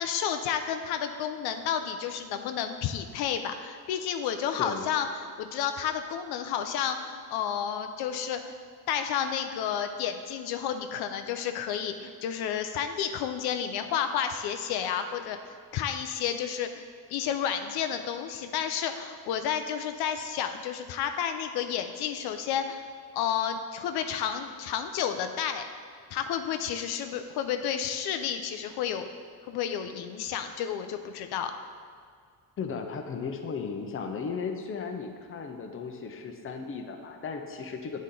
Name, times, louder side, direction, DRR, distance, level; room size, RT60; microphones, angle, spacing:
voice 1, 0.0-8.6 8.9-15.4 15.7-22.8 23.1-25.6 26.1-29.1 29.5-31.5, left 8 dB, 85° left, 7 dB, 0.5 m, -31 dB
voice 2, 32.6-38.0, left 5 dB, 35° left, 5 dB, 0.6 m, -35 dB
8.3 x 4.1 x 3.7 m, 2.1 s
cardioid pair, 100°, 38 cm